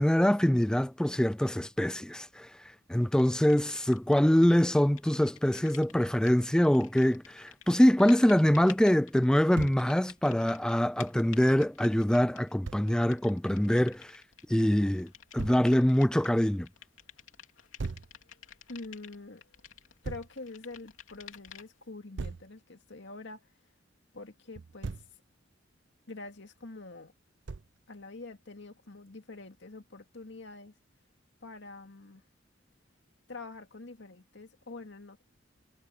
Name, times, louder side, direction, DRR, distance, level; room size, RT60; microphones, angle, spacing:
voice 1, 0.0-2.5 2.9-14.2 14.5-16.7, equal, 5° left, 0.3 m, -24 dB
sound 1, 3.2-4.6 4.8-21.9, left 9 dB, 85° left, 3.0 m, -52 dB
Thump thud, 9.5-9.9 12.6-12.9 15.4-15.7 17.8-18.1 20.0-20.3 22.2-22.5 24.5-25.1 27.5-27.8, right 4 dB, 65° right, 0.6 m, -38 dB
voice 2, 18.7-19.4 20.0-23.5 24.1-25.0 26.1-27.1 27.9-30.7 31.4-32.2 33.3-35.3, left 3 dB, 65° left, 2.3 m, -45 dB
head